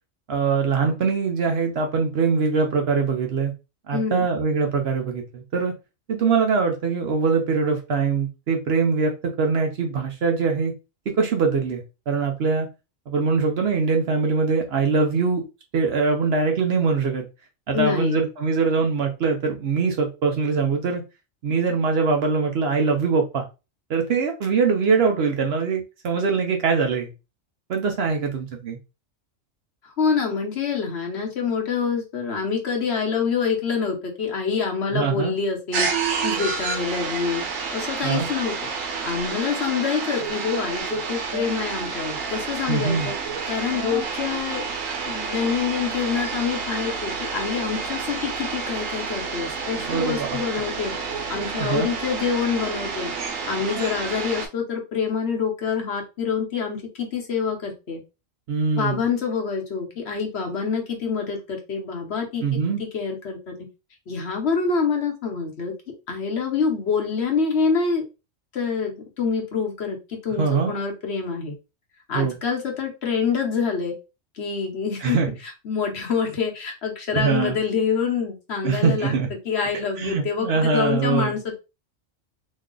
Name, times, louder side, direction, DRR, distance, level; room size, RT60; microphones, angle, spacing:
voice 1, 0.3-3.5 3.9-5.7 6.1-10.7 11.2-12.7 13.1-15.4 15.7-17.2 17.7-21.0 21.4-23.4 23.9-27.1 27.7-28.8 34.9-35.3 38.0-38.3 42.7-43.1 49.7-50.4 51.6-51.9 58.5-59.0 62.4-62.8 70.4-70.7 72.1-72.3 75.0-75.3 77.1-77.6 78.6-79.3 80.0-81.3, right 5 dB, 60° right, 4 dB, 0.8 m, -22 dB
voice 2, 3.9-4.3 17.7-18.3 29.8-35.9 36.2-37.4 37.7-38.7 39.0-43.1 43.5-44.7 45.0-53.1 53.4-58.0 58.8-63.5 64.1-68.0 68.5-71.5 72.1-73.9 74.3-75.2 75.6-79.1 79.4-81.6, left 5 dB, 60° left, 1 dB, 1.1 m, -26 dB
sound 1, 35.7-54.5, right 5 dB, 85° right, 1.1 m, -29 dB
3.1 x 2.2 x 3.7 m, 0.28 s
omnidirectional pair, 1.3 m